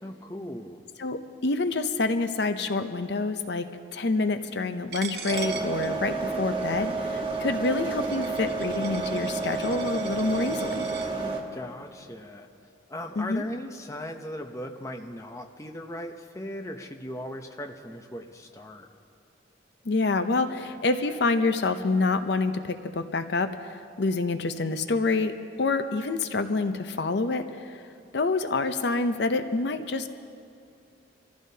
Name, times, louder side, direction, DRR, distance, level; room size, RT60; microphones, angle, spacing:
voice 1, 0.0-0.8 11.5-12.5 12.9-18.9, left 1 dB, 15° left, 4 dB, 0.7 m, -38 dB
voice 2, 1.0-3.7 3.9-10.9 13.2-13.4 19.8-25.3 25.6-27.8 28.1-30.1, left 3 dB, 60° left, 9 dB, 0.6 m, -27 dB
Coin (dropping), 4.9-11.1, right 6 dB, 55° right, 0.8 m, -41 dB
sound 1, 5.3-11.4, right 3 dB, 25° right, 1.2 m, -30 dB
26.0 x 14.5 x 2.8 m, 2.5 s
head